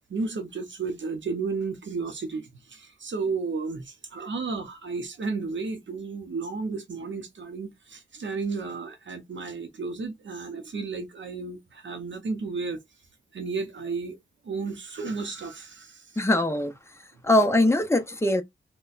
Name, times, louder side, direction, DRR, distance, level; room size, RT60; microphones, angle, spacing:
voice 1, 0.1-12.8 13.3-14.2 14.4-16.0, right 4 dB, 65° right, 0.7 m, -33 dB
voice 2, 16.2-16.7 17.2-18.4, left 1 dB, 15° left, 0.6 m, -21 dB
4.0 x 2.2 x 2.4 m
wide cardioid pair, 115°, 20 cm